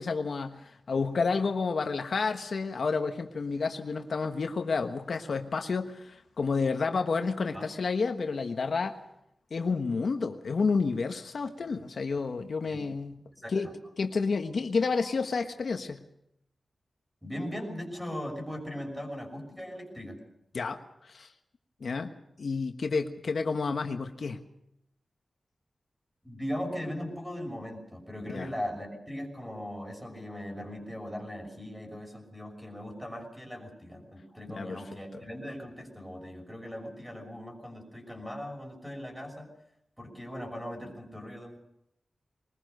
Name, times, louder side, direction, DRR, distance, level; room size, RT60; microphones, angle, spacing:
voice 1, 0.0-9.0 9.5-13.2 13.5-13.7 14.0-16.0 20.5-21.3 21.8-22.1 22.4-24.4 28.3-28.5 34.5-34.8, left 4 dB, 70° left, 6 dB, 1.3 m, -30 dB
voice 2, 13.3-13.7 17.2-20.2 26.2-39.5 40.0-41.6, equal, 5° right, 3 dB, 6.1 m, -39 dB
22.0 x 20.0 x 6.7 m, 0.81 s
wide cardioid pair, 100°, 0 cm